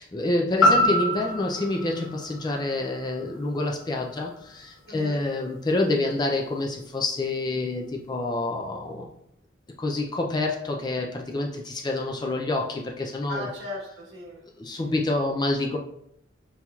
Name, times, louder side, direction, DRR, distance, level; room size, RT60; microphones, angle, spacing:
voice 1, 0.0-9.1 9.8-13.5 14.6-15.8, left 2 dB, 20° left, 1 dB, 0.3 m, -27 dB
sound 1, 0.6-4.7 5.1-5.2, left 1 dB, 90° left, 0.9 m, -26 dB
voice 2, 4.9-5.2 11.3-11.4 13.1-15.0, left 1 dB, 60° right, -5 dB, 1.2 m, -39 dB
5.3 x 3.0 x 2.3 m, 0.72 s
head